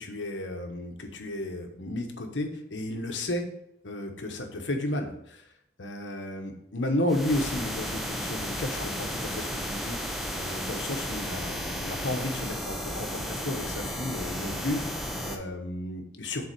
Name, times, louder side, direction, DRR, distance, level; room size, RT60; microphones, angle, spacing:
voice 1, 0.0-3.4 3.8-5.5 5.8-16.5, left 1 dB, 75° left, 4 dB, 1.2 m, -33 dB
sound 1, 7.1-15.4, equal, ahead, 0.8 m, -34 dB
7.1 x 4.2 x 6.7 m, 0.74 s
head